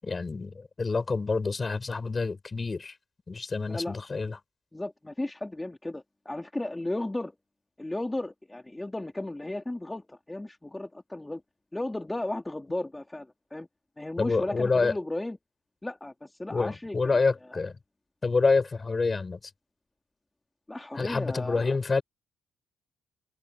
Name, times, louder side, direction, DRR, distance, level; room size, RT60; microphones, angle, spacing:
voice 1, 0.0-2.9 3.3-4.4 14.2-14.9 16.5-17.7 18.2-19.4 20.9-22.0, left 4 dB, 30° left, 7.9 m, -27 dB
voice 2, 4.7-7.3 7.8-11.4 11.7-13.7 14.0-15.4 15.8-17.2 20.7-21.7, left 2 dB, 10° left, 3.7 m, -35 dB
cardioid pair, 90°, 0 cm